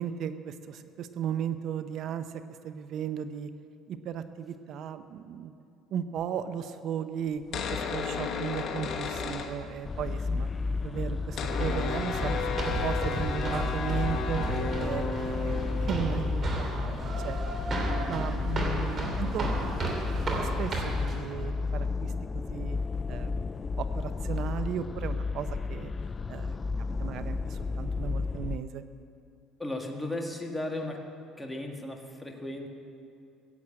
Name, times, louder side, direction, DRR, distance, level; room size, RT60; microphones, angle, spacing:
voice 1, 0.0-2.2 2.6-3.5 3.9-5.5 5.9-10.5 10.8-12.5 12.8-14.5 14.8-17.4 17.8-22.8 23.1-23.5 23.8-25.9 26.3-26.6 27.0-28.8, right 8 dB, 60° right, 11 dB, 0.7 m, -36 dB
sound 1, 7.4-10.1 10.4-10.5 10.6-20.1, left 5 dB, 55° left, 1.3 m, -35 dB
sound 2, 9.8-28.6, left 4 dB, 25° left, 0.4 m, -32 dB
sound 3, 11.3-21.1, right 2 dB, 40° right, 3.0 m, -34 dB
voice 2, 29.6-31.1 31.4-32.7, left 1 dB, 5° left, 1 dB, 1.8 m, -35 dB
15.5 x 7.8 x 8.8 m, 2.5 s
cardioid pair, 100°, 0 cm